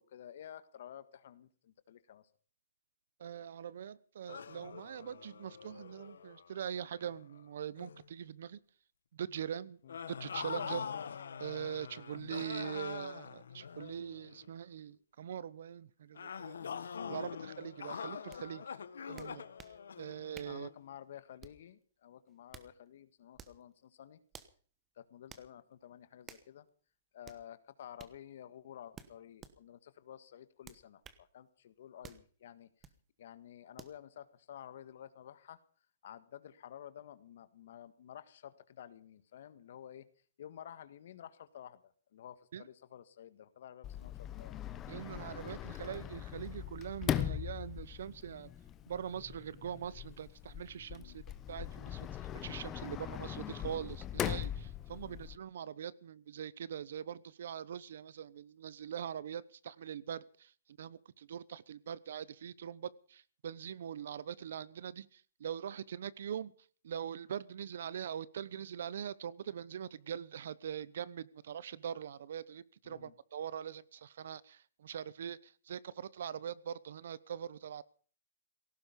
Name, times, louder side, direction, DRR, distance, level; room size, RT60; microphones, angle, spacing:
voice 1, 0.0-2.3 9.8-10.0 12.2-12.3 17.0-17.3 20.4-24.2 25.0-26.7 27.1-32.9 33.2-35.6 36.0-40.0 40.4-44.6 50.9-51.2 54.9-55.2 72.8-73.1, left 10 dB, 55° left, 14 dB, 1.6 m, -52 dB
voice 2, 3.2-8.6 9.1-9.8 10.2-10.9 11.4-16.6 17.1-18.6 19.1-19.4 20.0-20.7 42.5-42.6 44.9-48.5 48.9-51.2 51.5-52.1 52.3-60.5 60.8-66.5 66.8-77.8, right 9 dB, 60° right, 20 dB, 0.9 m, -42 dB
sound 1, 4.3-7.4 7.8-8.1 9.9-14.5 16.1-20.7, left 7 dB, 85° left, 1.4 m, -44 dB
sound 2, 18.3-18.4 19.2-19.8 20.3-20.6 21.4-21.7 22.3-22.7 23.3-23.6 24.3-24.6 25.3-25.5 26.3-26.5 27.2-27.4 28.0-28.2 28.9-29.6 30.6-31.2 32.0-32.3 32.8-33.0 33.8-34.0, right 7 dB, 15° right, 1.1 m, -53 dB
Sliding door, 43.8-55.4, left 11 dB, 20° left, 0.9 m, -40 dB
17.5 x 15.5 x 5.4 m, 0.43 s
hypercardioid pair, 160°, 0 cm